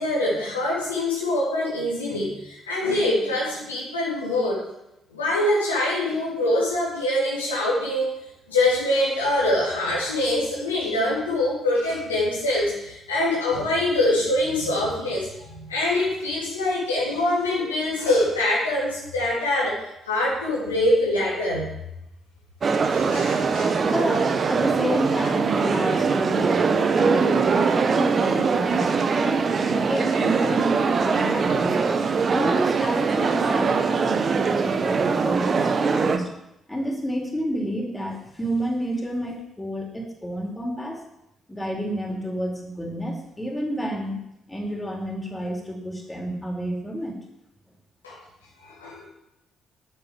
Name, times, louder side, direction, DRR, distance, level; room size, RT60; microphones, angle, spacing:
voice 1, 0.0-4.7 5.1-8.1 8.5-19.8 20.0-21.7 22.9-23.7 48.0-48.2 48.6-49.0, left 1 dB, 85° left, -6 dB, 3.4 m, -24 dB
sound 1, 22.6-36.2, right 5 dB, 45° right, 1.2 m, -22 dB
voice 2, 23.8-28.9 29.2-31.8 32.3-36.3 36.7-41.0 41.5-44.2 44.5-47.2, equal, 15° left, 0 dB, 4.2 m, -30 dB
8.7 x 8.3 x 8.0 m, 0.86 s
figure-of-eight pair, 40°, 0 cm